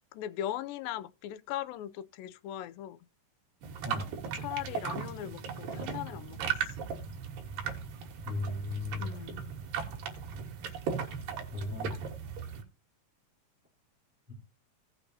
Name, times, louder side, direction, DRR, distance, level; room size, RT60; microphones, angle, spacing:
voice 1, 0.1-3.0 4.3-6.8 8.9-9.5, left 12 dB, 90° left, 2.4 m, -39 dB
sound 1, 3.6-12.6, right 6 dB, 85° right, 3.2 m, -37 dB
voice 2, 3.8-4.1 8.2-9.1 11.5-12.0 14.3-14.4, left 2 dB, 5° right, 3.0 m, -36 dB
16.5 x 6.7 x 2.8 m
omnidirectional pair, 3.9 m